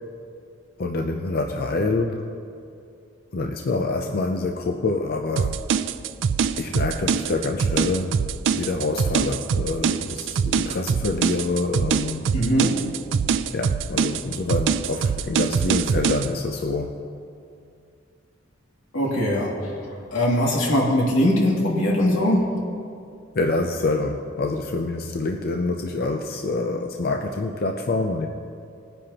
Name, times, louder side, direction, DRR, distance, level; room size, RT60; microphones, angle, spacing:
voice 1, 0.8-2.3 3.3-5.6 6.6-8.2 8.5-12.3 13.5-17.0 23.3-28.3, left 3 dB, 50° left, 3 dB, 0.6 m, -26 dB
sound 1, 5.4-16.3, right 6 dB, 65° right, 0.4 m, -24 dB
voice 2, 12.3-12.7 18.9-19.5 20.1-22.4, left 1 dB, 85° left, -3 dB, 2.5 m, -20 dB
20.0 x 10.0 x 2.9 m, 2.4 s
head